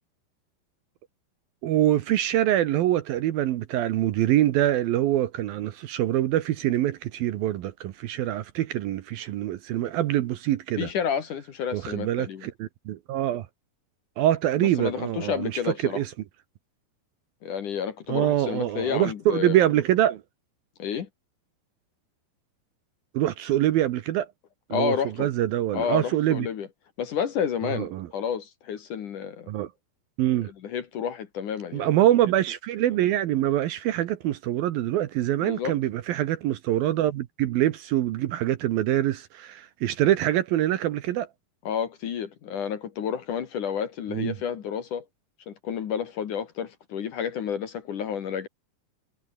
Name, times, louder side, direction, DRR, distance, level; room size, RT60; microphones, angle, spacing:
voice 1, 1.6-10.9 11.7-13.5 14.2-16.1 18.1-20.2 23.1-24.3 24.7-26.5 27.6-28.1 29.5-29.7 30.2-30.5 31.7-41.3 44.1-44.4, right 13 dB, 70° right, 2.5 m, -25 dB
voice 2, 10.8-12.5 14.6-16.0 17.4-19.7 20.8-21.1 24.7-25.3 25.7-26.7 27.0-29.5 30.6-31.9 35.4-35.7 41.6-45.0 45.5-48.5, left 8 dB, 55° left, 2.8 m, -30 dB
omnidirectional pair, 5.0 m